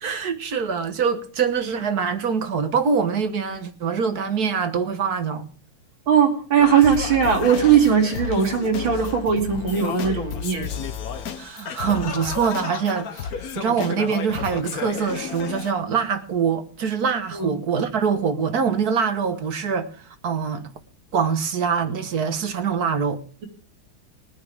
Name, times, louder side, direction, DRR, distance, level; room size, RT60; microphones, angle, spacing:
voice 1, 0.0-5.5 11.4-19.9 20.2-20.7 21.1-23.2, right 6 dB, 50° right, 1.6 m, -24 dB
voice 2, 6.1-10.7 17.3-17.5, right 7 dB, 70° right, 3.3 m, -19 dB
Singing, 6.6-15.7, left 7 dB, 55° left, 1.3 m, -32 dB
21.5 x 9.8 x 3.5 m
omnidirectional pair, 2.3 m